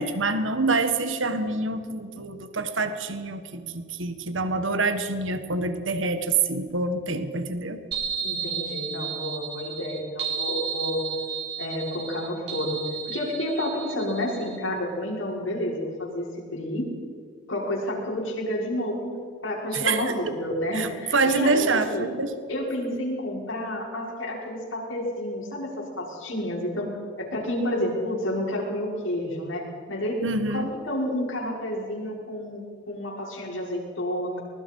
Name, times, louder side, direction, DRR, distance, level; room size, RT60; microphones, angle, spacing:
voice 1, 0.0-7.8 19.7-20.3 20.7-22.4 30.2-30.7, right 3 dB, 80° right, 9 dB, 1.6 m, -26 dB
sound 1, 7.9-14.6, right 7 dB, 60° right, 5.9 m, -33 dB
voice 2, 8.2-11.0 11.6-12.8 13.1-16.9 17.5-19.1 19.4-22.0 22.5-30.2 30.5-34.4, left 1 dB, 85° left, -2 dB, 6.1 m, -30 dB
24.0 x 21.0 x 5.6 m, 2.1 s
head